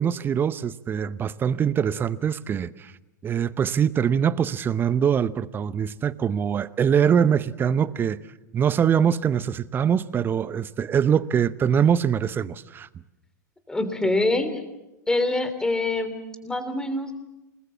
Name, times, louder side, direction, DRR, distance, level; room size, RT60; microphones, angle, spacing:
voice 1, 0.0-2.9 3.2-8.2 8.5-12.9, right 8 dB, 20° right, 0.8 m, -23 dB
voice 2, 13.7-14.6 15.1-17.1, left 2 dB, 5° left, 3.1 m, -25 dB
28.0 x 20.0 x 7.3 m
figure-of-eight pair, 95°, 10 cm